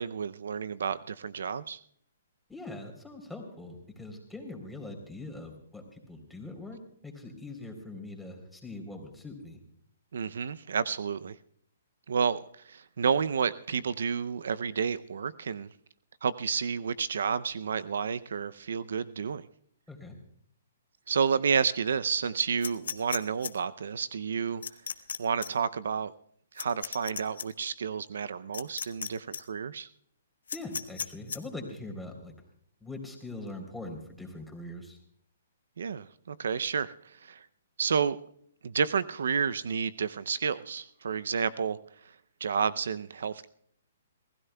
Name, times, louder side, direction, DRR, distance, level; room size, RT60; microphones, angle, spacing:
voice 1, 0.0-1.8 10.1-11.4 12.1-15.7 16.2-19.5 21.1-24.6 25.2-26.1 26.5-29.9 35.8-37.5 37.8-38.2 38.6-41.8 42.4-43.5, right 6 dB, 75° right, 16 dB, 0.5 m, -30 dB
voice 2, 2.5-6.8 7.0-9.6 19.9-20.2 30.5-32.3 32.8-35.0, left 2 dB, ahead, 1 dB, 3.5 m, -42 dB
sound 1, 22.6-23.5 24.6-25.2 25.4-25.5 26.6-27.5 28.5-29.1 29.3-29.4 30.5-31.4, left 6 dB, 80° left, 0.9 m, -35 dB
27.0 x 16.0 x 2.3 m, 0.65 s
hypercardioid pair, 140°, 0 cm